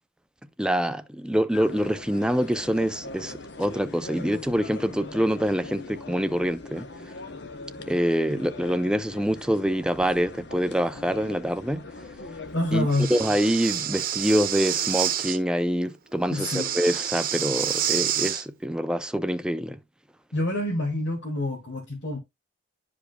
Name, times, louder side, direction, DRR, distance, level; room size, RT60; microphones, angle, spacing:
voice 1, 0.6-6.9 7.9-11.8 12.7-19.8, equal, 5° right, 0.4 m, -25 dB
sound 1, 1.5-12.9, left 2 dB, 60° left, 0.9 m, -41 dB
voice 2, 12.5-13.1 16.3-16.7 20.3-22.2, left 1 dB, 80° left, 2.0 m, -27 dB
Breathing, 12.9-15.4 16.3-18.4, right 10 dB, 50° right, 1.0 m, -28 dB
11.0 x 5.0 x 2.2 m
head